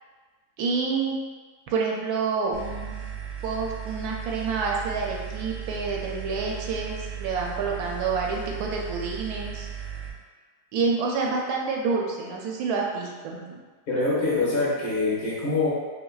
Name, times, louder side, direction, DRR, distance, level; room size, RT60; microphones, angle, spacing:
voice 1, 0.6-1.2 1.7-3.1 3.4-9.7 10.7-13.6, right 4 dB, 75° right, -1 dB, 1.1 m, -28 dB
sound 1, 2.5-10.1, right 8 dB, 60° right, 0.8 m, -36 dB
voice 2, 13.9-15.7, left 3 dB, 70° left, -8 dB, 1.6 m, -24 dB
5.3 x 2.1 x 2.3 m, 1.4 s
omnidirectional pair, 1.7 m